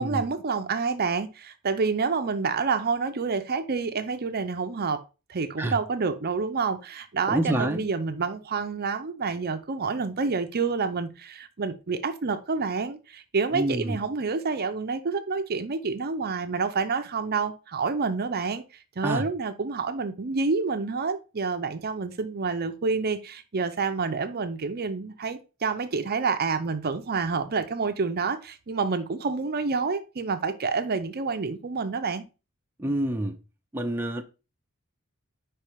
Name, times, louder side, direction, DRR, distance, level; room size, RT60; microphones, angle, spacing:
voice 1, 0.0-5.0 5.3-18.6 19.0-32.2, right 4 dB, 45° right, 0.6 m, -28 dB
voice 2, 7.3-7.9 13.5-14.0 19.0-19.3 32.8-33.4 33.7-34.2, right 1 dB, 10° right, 0.6 m, -27 dB
5.3 x 4.4 x 4.9 m
head